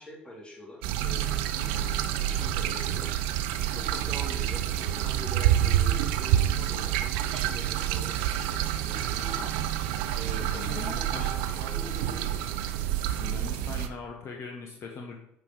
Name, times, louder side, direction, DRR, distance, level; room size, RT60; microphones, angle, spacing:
voice 1, 0.0-3.1 3.7-9.5 10.1-12.4, equal, 15° left, -3 dB, 3.6 m, -43 dB
sound 1, 0.8-13.9, right 11 dB, 70° right, 0.6 m, -28 dB
voice 2, 10.3-11.3 13.2-15.2, left 5 dB, 50° left, 1 dB, 1.3 m, -40 dB
9.7 x 5.5 x 4.8 m, 0.80 s
hypercardioid pair, 55°, 6 cm